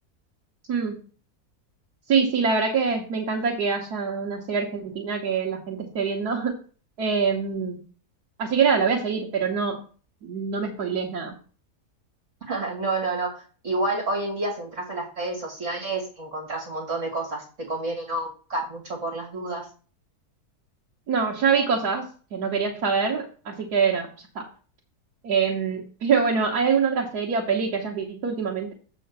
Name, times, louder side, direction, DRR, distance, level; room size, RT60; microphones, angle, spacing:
voice 1, 2.1-6.6 7.0-7.8 8.4-9.8 10.2-11.3 21.1-24.1 24.3-24.5 25.2-28.7, right 5 dB, 85° right, -2 dB, 1.7 m, -24 dB
voice 2, 12.5-19.7, right 2 dB, 55° right, -1 dB, 2.5 m, -29 dB
7.8 x 3.8 x 6.6 m, 0.39 s
omnidirectional pair, 1.6 m